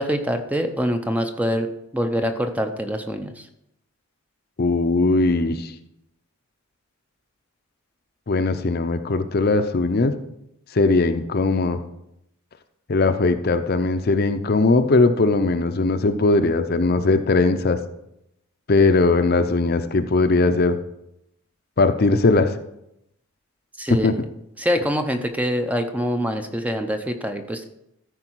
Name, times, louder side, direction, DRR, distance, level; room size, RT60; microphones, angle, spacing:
voice 1, 0.0-3.5 23.8-24.2 24.6-27.6, equal, 5° right, 6 dB, 0.5 m, -25 dB
voice 2, 4.6-5.7 8.3-10.1 10.7-11.8 12.9-17.8 18.7-20.8 21.8-22.5 24.0-24.1, left 3 dB, 45° left, 9 dB, 0.6 m, -19 dB
14.0 x 4.7 x 4.6 m, 0.81 s
head